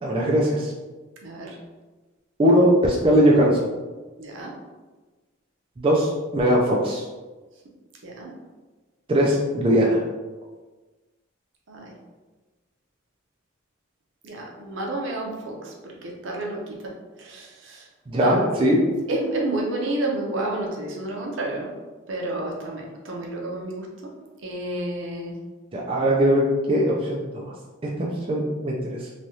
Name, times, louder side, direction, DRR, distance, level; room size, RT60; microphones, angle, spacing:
voice 1, 0.0-0.7 2.4-3.7 5.8-7.0 9.1-10.0 18.1-18.9 25.7-27.5 27.8-29.0, equal, 25° right, -3 dB, 0.3 m, -20 dB
voice 2, 1.2-1.6 4.2-4.5 8.0-8.3 11.7-11.9 14.2-16.8 17.2-17.9 18.2-18.4 19.1-21.7 22.1-23.9 24.4-25.4, right 2 dB, 70° right, -1 dB, 0.6 m, -30 dB
3.1 x 2.3 x 2.7 m, 1.3 s
head